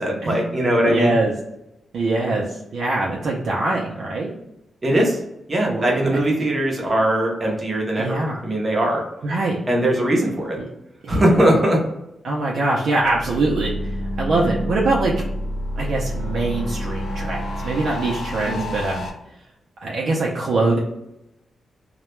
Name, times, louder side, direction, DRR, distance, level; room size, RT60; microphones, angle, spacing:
voice 1, 0.0-1.1 4.8-5.2 5.5-9.0 9.7-10.6 11.1-11.8 18.4-18.7, right 1 dB, 20° right, -1 dB, 0.6 m, -20 dB
voice 2, 0.9-1.3 1.9-4.3 5.7-5.8 8.0-8.4 9.2-9.6 11.0-11.4 12.2-15.2 15.8-19.1 19.8-20.8, right 2 dB, 65° right, -4 dB, 0.4 m, -23 dB
sound 1, 13.0-19.1, equal, 70° left, 0.5 m, -28 dB
2.2 x 2.1 x 3.0 m, 0.87 s
wide cardioid pair, 170°, 0 cm